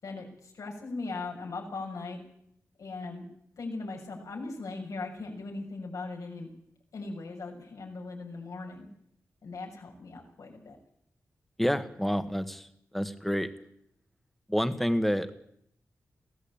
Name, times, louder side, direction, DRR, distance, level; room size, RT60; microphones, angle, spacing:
voice 1, 0.0-2.2 2.8-3.2 3.6-6.5 6.9-8.9 9.4-10.8, left 3 dB, 80° left, 1 dB, 6.9 m, -39 dB
voice 2, 11.6-12.7 12.9-13.5 14.5-15.3, equal, 5° left, 9 dB, 1.8 m, -28 dB
22.5 x 16.5 x 8.8 m, 0.71 s
wide cardioid pair, 100°, 6 cm